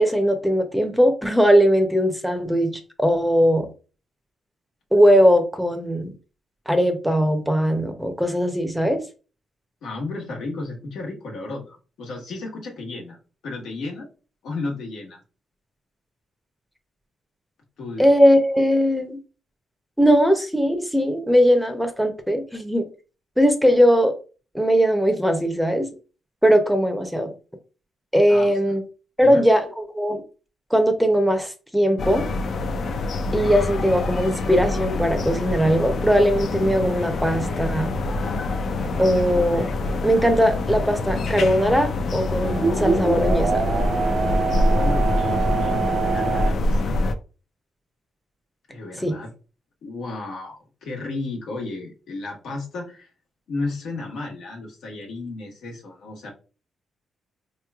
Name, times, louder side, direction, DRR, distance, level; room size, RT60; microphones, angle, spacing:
voice 1, 0.0-3.7 4.9-6.1 6.7-9.0 18.0-19.2 20.0-22.8 23.4-24.1 24.5-25.9 26.4-27.3 28.1-28.8 29.2-29.6 29.9-30.2 30.7-32.3 33.3-37.9 39.0-39.7 40.0-43.7 49.0-49.2, equal, ahead, 0.6 m, -19 dB
voice 2, 9.8-13.2 13.4-14.1 14.4-15.2 17.8-18.1 28.3-28.8 29.2-29.4 44.7-47.0 48.7-49.3 49.8-53.1 53.5-56.3, left 3 dB, 85° left, 1.2 m, -33 dB
sound 1, 32.0-47.1, left 2 dB, 55° left, 0.4 m, -25 dB
sound 2, 34.1-37.8 38.2-38.3 38.8-40.4 40.9-41.0 42.4-46.5, right 5 dB, 45° right, 0.4 m, -27 dB
4.3 x 3.0 x 2.3 m
cardioid pair, 100°, 0 cm